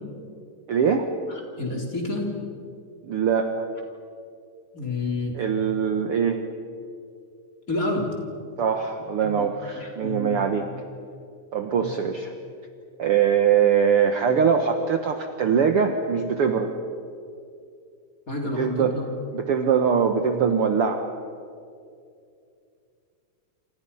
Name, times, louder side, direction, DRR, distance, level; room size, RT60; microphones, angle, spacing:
voice 1, 0.7-1.1 3.0-3.7 5.3-6.4 8.6-10.7 11.5-12.3 13.0-16.7 18.6-19.0 19.3-21.0, right 7 dB, 75° right, 6 dB, 1.3 m, -22 dB
voice 2, 1.3-2.3 4.7-5.4 7.7-8.1 9.2-9.5 9.8-10.4 11.7-11.9 18.3-19.0, left 2 dB, 20° left, 0 dB, 3.9 m, -29 dB
28.5 x 28.0 x 5.6 m, 2.4 s
omnidirectional pair, 4.2 m